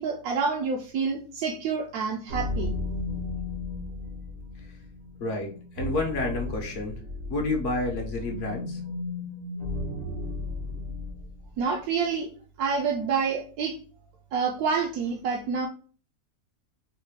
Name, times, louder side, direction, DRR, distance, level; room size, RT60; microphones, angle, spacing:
voice 1, 0.0-2.7 11.6-12.3 12.6-13.8 14.3-15.7, right 5 dB, 75° right, 1 dB, 1.0 m, -28 dB
sound 1, 2.3-11.5, left 2 dB, 55° right, 0.7 m, -34 dB
voice 2, 5.2-5.5 5.7-7.0 7.3-8.8, left 2 dB, 60° left, 2 dB, 0.9 m, -29 dB
4.0 x 2.1 x 3.0 m, 0.40 s
omnidirectional pair, 1.7 m